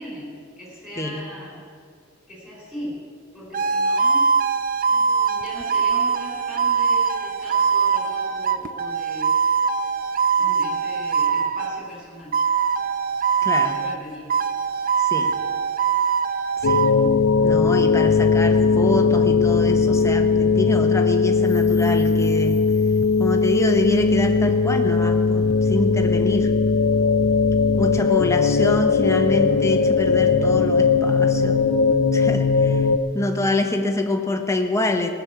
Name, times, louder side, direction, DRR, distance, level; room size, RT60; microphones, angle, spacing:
voice 1, 0.0-1.6 2.3-3.0 3.3-4.3 4.9-9.3 10.4-12.3 13.7-14.3 17.3-18.0, equal, 5° right, -5 dB, 4.7 m, -39 dB
sound 1, 3.5-11.8 12.3-14.0 14.3-16.9, right 6 dB, 45° right, 0.6 m, -22 dB
voice 2, 13.4-13.8 15.1-15.3 16.6-16.9 17.4-22.6 23.2-26.5 27.8-31.6 32.1-32.9 33.1-35.1, left 2 dB, 15° left, 4 dB, 1.0 m, -26 dB
sound 2, 16.6-33.0, left 4 dB, 70° left, 0.6 m, -19 dB
17.5 x 7.3 x 8.4 m, 2.3 s
head